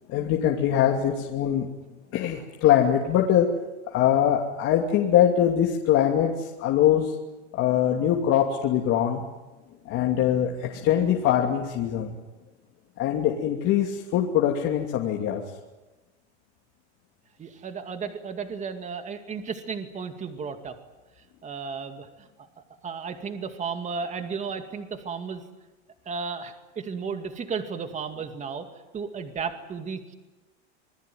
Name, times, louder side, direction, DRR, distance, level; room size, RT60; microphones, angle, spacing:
voice 1, 0.1-1.7 2.1-3.5 3.9-7.1 7.5-9.2 9.8-12.2 13.0-15.4, left 10 dB, 40° left, 0 dB, 2.8 m, -22 dB
voice 2, 17.4-20.8 21.2-25.4 26.1-28.7 28.9-30.1, right 5 dB, 20° right, 7 dB, 2.3 m, -34 dB
27.0 x 20.0 x 9.4 m, 1.1 s
supercardioid pair, 150°, 35 cm